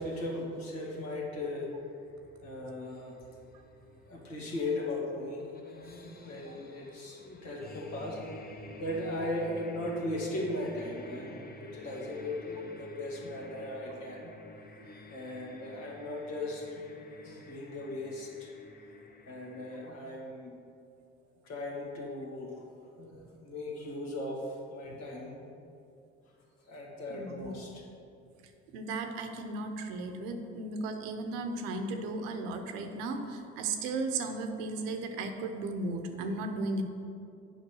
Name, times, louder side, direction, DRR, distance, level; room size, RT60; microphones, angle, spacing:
voice 1, 0.0-1.8 2.4-3.2 4.1-8.2 8.8-14.3 15.1-16.9 17.2-18.5 19.3-20.6 21.4-25.5 26.7-27.8, left 1 dB, 70° left, -2 dB, 2.2 m, -38 dB
sound 1, 0.6-19.9, left 2 dB, 30° left, 1.0 m, -51 dB
voice 2, 27.1-27.5 28.7-36.8, right 3 dB, 90° right, 6 dB, 0.8 m, -35 dB
8.2 x 5.2 x 6.2 m, 2.5 s
supercardioid pair, 70°, 29 cm